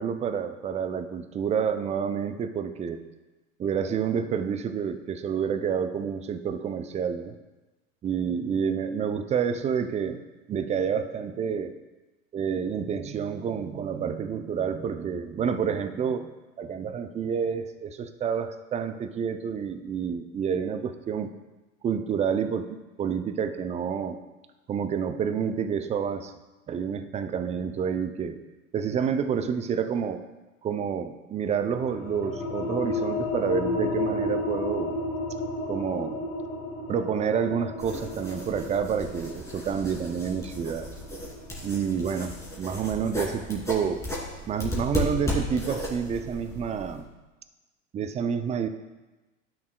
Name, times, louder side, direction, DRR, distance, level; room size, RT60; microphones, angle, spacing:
voice 1, 0.0-3.0 3.6-7.3 8.0-10.2 10.5-11.7 12.3-16.3 16.6-21.3 21.8-22.7 23.0-24.2 24.7-26.3 26.7-28.4 28.7-30.3 30.6-34.9 35.7-36.2 36.9-40.9 41.6-44.0 44.5-47.1 47.9-48.7, right 7 dB, 20° right, 9 dB, 0.4 m, -29 dB
sound 1, 31.7-42.9, left 2 dB, 50° left, 1.5 m, -33 dB
sound 2, 37.8-47.0, equal, 5° left, 2.7 m, -35 dB
12.0 x 6.3 x 2.2 m, 1.1 s
hypercardioid pair, 90°, 40 cm